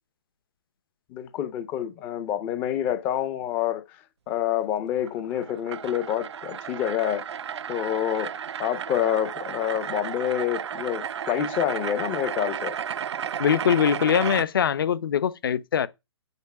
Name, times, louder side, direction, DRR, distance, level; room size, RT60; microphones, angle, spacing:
voice 1, 1.1-3.8 4.3-7.2 7.7-12.8, left 10 dB, 10° left, 0.4 m, -27 dB
sound 1, 5.0-14.5, right 8 dB, 80° right, 0.5 m, -33 dB
voice 2, 13.4-15.9, left 8 dB, 55° left, 0.7 m, -22 dB
8.1 x 5.4 x 5.8 m
hypercardioid pair, 170°, 14 cm